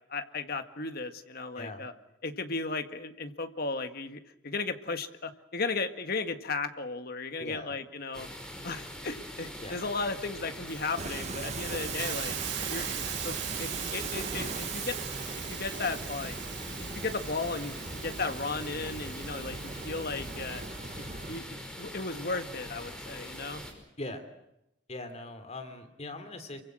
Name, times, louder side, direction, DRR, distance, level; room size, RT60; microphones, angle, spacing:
voice 1, 0.1-1.9 2.2-8.3 8.6-12.4 12.7-15.0 15.5-16.4 16.8-19.6 19.8-20.6 21.0-23.6, left 3 dB, 55° left, 8 dB, 1.9 m, -35 dB
voice 2, 7.4-7.7 9.6-9.8 24.0-24.3 24.9-26.6, left 2 dB, 35° left, 8 dB, 3.0 m, -40 dB
sound 1, 8.1-23.7, equal, 5° left, 5.4 m, -43 dB
Hiss, 10.7-20.7, right 9 dB, 75° right, 7.0 m, -41 dB
sound 2, 11.0-21.4, right 4 dB, 35° right, 1.0 m, -40 dB
28.0 x 24.5 x 6.4 m, 0.84 s
head